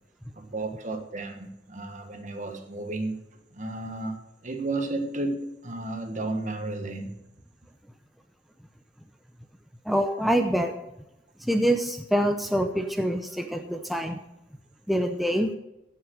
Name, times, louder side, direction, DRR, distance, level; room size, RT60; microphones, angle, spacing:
voice 1, 0.3-3.2 3.5-7.2, right 2 dB, 45° right, 1.4 m, -33 dB
voice 2, 9.9-10.7 11.4-14.2 14.9-15.5, equal, ahead, 0.6 m, -25 dB
15.5 x 6.3 x 6.2 m
head